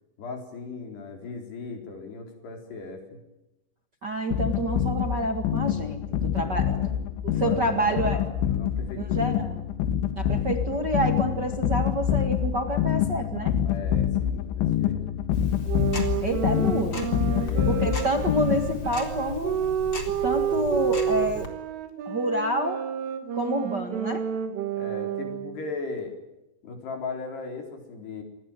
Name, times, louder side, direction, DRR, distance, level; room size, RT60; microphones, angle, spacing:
voice 1, 0.2-3.2 6.3-7.0 7.4-9.3 13.7-15.0 17.2-18.0 24.8-26.1 26.6-28.2, left 4 dB, 60° left, 5 dB, 6.1 m, -38 dB
voice 2, 4.0-6.8 7.2-8.2 9.0-9.6 10.2-13.6 16.2-17.1 17.7-19.6 20.2-21.5 22.0-22.8 23.3-24.2, right 1 dB, 65° right, 5 dB, 1.0 m, -28 dB
sound 1, 4.3-19.0, left 10 dB, 80° left, 3.9 m, -26 dB
Tick-tock, 15.3-21.5, left 2 dB, 25° left, 4.0 m, -38 dB
sound 2, 15.7-25.6, right 8 dB, 90° right, 5.0 m, -30 dB
27.5 x 21.5 x 9.1 m, 0.95 s
omnidirectional pair, 5.5 m